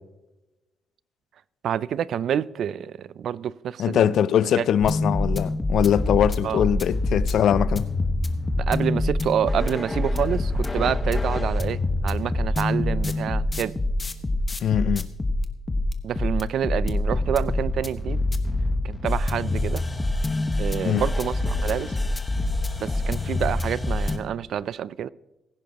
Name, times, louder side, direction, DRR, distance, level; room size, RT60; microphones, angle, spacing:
voice 1, 1.6-4.2 4.6-4.7 6.4-6.6 8.6-13.7 16.0-18.2 18.8-19.8 20.6-22.0 22.8-25.1, right 9 dB, 65° right, 0.4 m, -28 dB
voice 2, 3.8-7.9 14.6-15.1 20.8-21.0, left 9 dB, 70° left, 0.4 m, -22 dB
sound 1, 4.8-24.2, left 2 dB, 20° left, 1.2 m, -25 dB
17.0 x 15.5 x 2.9 m
cardioid pair, 90°, 0 cm